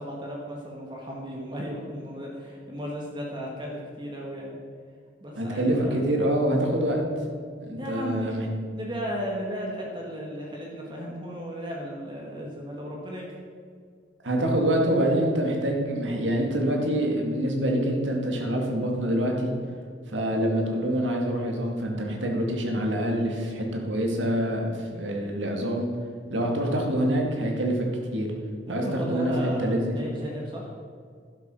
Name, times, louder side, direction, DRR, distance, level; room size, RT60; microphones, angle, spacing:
voice 1, 0.0-4.6 5.2-6.0 7.8-8.4 8.8-13.4 28.7-30.7, equal, 25° right, -3 dB, 1.6 m, -35 dB
voice 2, 5.4-7.0 7.6-8.4 14.2-19.5 20.1-25.9 26.3-27.9 28.1-28.3 28.7-28.8 29.1-29.3 29.6-30.1, right 1 dB, 80° right, 1 dB, 2.3 m, -26 dB
11.5 x 7.3 x 6.2 m, 2.1 s
head